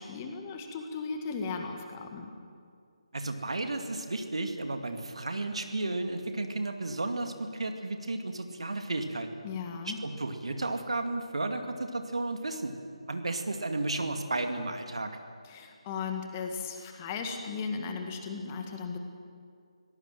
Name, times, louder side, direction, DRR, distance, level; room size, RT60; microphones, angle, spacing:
voice 1, 0.0-2.3 9.4-10.0 15.4-19.0, left 5 dB, 20° left, 4 dB, 1.9 m, -36 dB
voice 2, 3.1-9.3 10.0-12.7 13.1-15.1, right 2 dB, 60° right, 6 dB, 2.2 m, -33 dB
24.5 x 17.5 x 7.6 m, 2.3 s
figure-of-eight pair, 150°, 3 cm